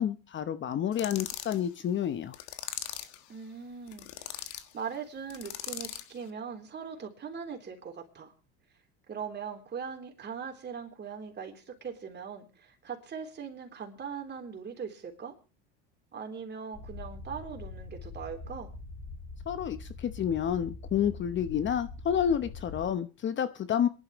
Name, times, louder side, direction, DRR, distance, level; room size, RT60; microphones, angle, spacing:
voice 1, 0.0-2.4 19.5-23.9, left 9 dB, 35° left, 12 dB, 0.9 m, -29 dB
sound 1, 0.9-1.6 2.3-3.2 3.9-4.6 5.3-6.1, left 13 dB, 65° left, 1.6 m, -39 dB
voice 2, 3.3-8.3 9.1-15.3 16.1-18.7, right 6 dB, 30° right, 4 dB, 3.5 m, -40 dB
sound 2, 16.7-22.9, left 3 dB, 20° left, 5.4 m, -43 dB
26.5 x 11.0 x 3.1 m, 0.31 s
supercardioid pair, 100°, 32 cm